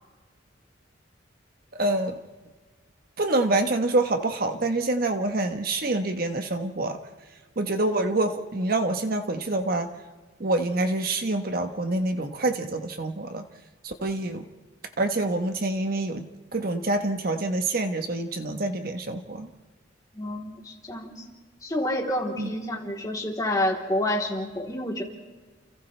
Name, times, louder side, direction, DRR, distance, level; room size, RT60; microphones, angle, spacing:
voice 1, 1.8-2.2 3.2-7.0 7.6-9.9 10.4-13.4 13.8-14.4 15.0-16.2 16.5-19.5 22.4-22.5, right 2 dB, 50° right, 6 dB, 1.2 m, -26 dB
voice 2, 20.1-21.2 21.6-25.0, left 1 dB, 20° left, -1 dB, 3.5 m, -28 dB
30.0 x 29.5 x 3.4 m, 1.4 s
head